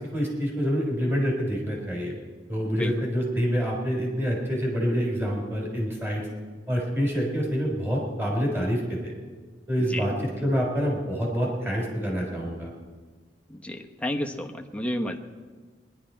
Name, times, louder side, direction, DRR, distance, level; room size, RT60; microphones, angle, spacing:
voice 1, 0.1-2.1 2.5-6.2 6.7-9.1 9.7-12.7, equal, 15° right, -2 dB, 3.8 m, -27 dB
voice 2, 13.5-15.2, left 1 dB, 5° left, 2 dB, 1.0 m, -31 dB
21.5 x 11.5 x 4.5 m, 1.4 s
head